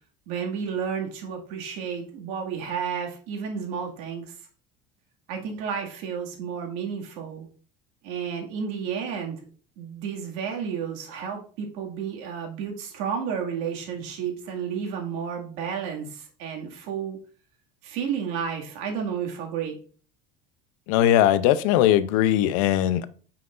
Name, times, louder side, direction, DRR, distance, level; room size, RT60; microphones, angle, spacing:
voice 1, 0.3-4.3 5.3-7.5 8.0-9.4 9.8-17.2 17.8-19.8, right 7 dB, 70° right, 2.1 m, -31 dB
voice 2, 20.9-23.1, left 12 dB, 85° left, 0.6 m, -20 dB
9.4 x 5.8 x 2.5 m
cardioid pair, 160°, 17 cm